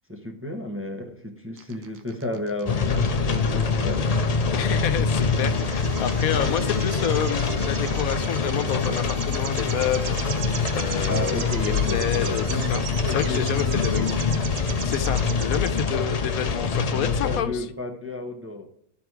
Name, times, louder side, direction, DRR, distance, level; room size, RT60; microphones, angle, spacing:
voice 1, 0.1-4.2 11.1-14.1 16.9-18.7, left 2 dB, 10° right, 2 dB, 0.8 m, -33 dB
sound 1, 1.6-15.9, right 9 dB, 70° right, 1.1 m, -39 dB
sound 2, 2.7-17.4, left 5 dB, 45° left, 0.5 m, -25 dB
voice 2, 4.5-10.2 10.7-12.8 13.1-14.2 14.8-17.7, left 9 dB, 85° left, 10 dB, 1.2 m, -29 dB
12.5 x 4.3 x 4.6 m, 0.71 s
omnidirectional pair, 1.4 m